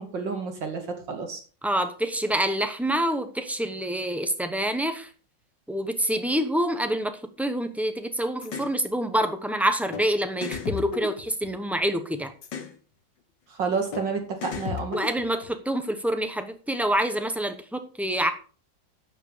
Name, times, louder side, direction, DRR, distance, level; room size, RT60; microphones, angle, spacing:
voice 1, 0.0-1.4 13.5-15.0, right 5 dB, 75° right, 4 dB, 3.1 m, -30 dB
voice 2, 1.6-5.1 5.7-12.3 14.9-18.3, right 1 dB, ahead, 8 dB, 0.4 m, -27 dB
sound 1, 8.4-8.7 9.9-10.0 10.4-11.8 12.4-12.7 13.9-14.0 14.4-15.5, left 7 dB, 70° left, 2.0 m, -34 dB
11.5 x 7.1 x 5.0 m, 0.38 s
omnidirectional pair, 2.0 m